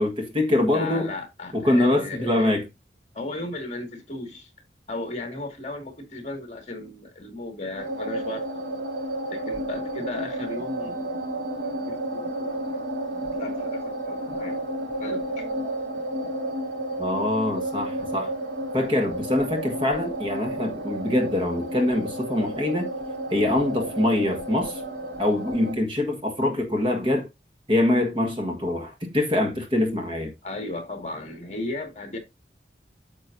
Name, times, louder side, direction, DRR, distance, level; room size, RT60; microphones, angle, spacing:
voice 1, 0.0-1.1 1.5-2.6 17.0-18.3 18.7-22.9 23.3-24.8 25.2-27.3 27.7-30.3, left 1 dB, 30° right, 1.5 m, -24 dB
voice 2, 0.7-2.5 3.1-4.5 4.9-8.9 9.3-11.1 11.5-12.8 13.4-14.6 15.0-15.4 30.4-32.2, left 2 dB, 40° left, 2.0 m, -36 dB
sound 1, 7.8-25.7, right 1 dB, 80° right, 1.9 m, -31 dB
9.0 x 6.9 x 2.7 m
head